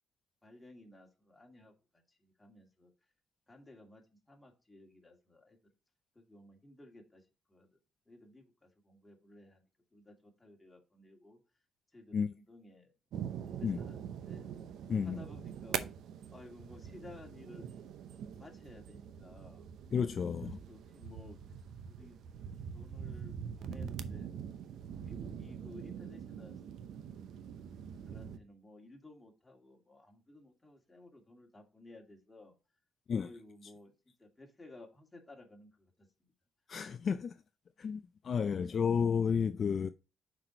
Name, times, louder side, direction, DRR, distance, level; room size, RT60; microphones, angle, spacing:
voice 1, 0.4-2.9 3.5-5.6 6.1-7.8 8.1-9.7 9.9-11.4 11.9-12.9 13.4-14.4 14.9-15.8 16.3-17.7 18.4-19.7 20.4-22.2 22.7-24.3 25.0-27.1 28.0-32.5 33.2-36.1 38.4-38.8, left 2 dB, 15° left, 2.2 m, -56 dB
sound 1, 13.1-28.4, right 8 dB, 75° right, 0.6 m, -44 dB
voice 2, 14.9-15.2 19.9-20.6 33.1-33.3 36.7-37.4 37.8-39.9, left 6 dB, 50° left, 0.4 m, -32 dB
5.8 x 4.6 x 5.1 m
cardioid pair, 90°, 0 cm